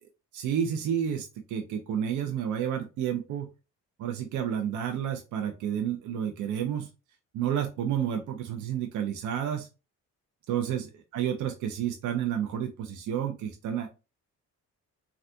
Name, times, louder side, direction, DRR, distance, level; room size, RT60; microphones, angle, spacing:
voice 1, 0.3-3.5 4.0-6.9 7.3-9.7 10.5-13.9, right 9 dB, 75° right, 4 dB, 0.6 m, -30 dB
3.4 x 2.4 x 2.6 m, 0.29 s
cardioid pair, 90°, 30 cm